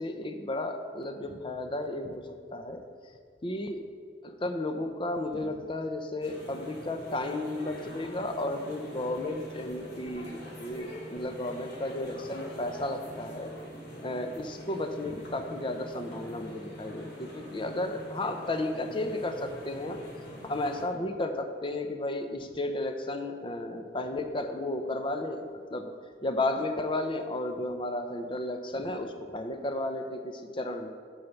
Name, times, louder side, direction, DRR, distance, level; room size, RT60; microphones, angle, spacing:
voice 1, 0.0-2.8 3.4-3.8 4.2-13.5 14.0-25.9 26.2-30.9, left 2 dB, 30° left, 6 dB, 0.7 m, -33 dB
sound 1, 5.2-5.7, equal, ahead, 1.7 m, -50 dB
sound 2, 6.2-20.9, equal, 65° left, 2.5 m, -44 dB
8.3 x 5.6 x 5.9 m, 2.1 s
head